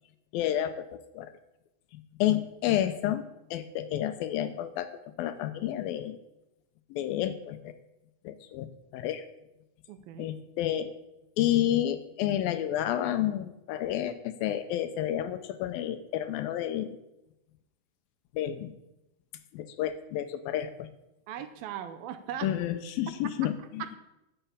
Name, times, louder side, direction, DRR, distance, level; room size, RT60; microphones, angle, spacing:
voice 1, 0.3-1.3 2.2-4.9 5.2-6.2 6.9-7.7 8.2-8.7 8.9-9.2 10.2-10.9 11.4-17.0 18.4-18.7 19.5-20.9 22.4-23.8, left 12 dB, 80° left, 11 dB, 2.3 m, -30 dB
voice 2, 9.9-10.3 21.3-22.5 23.2-23.3 23.6-24.0, right 10 dB, 80° right, 11 dB, 2.5 m, -39 dB
11.5 x 6.9 x 8.6 m, 0.92 s
omnidirectional pair, 4.5 m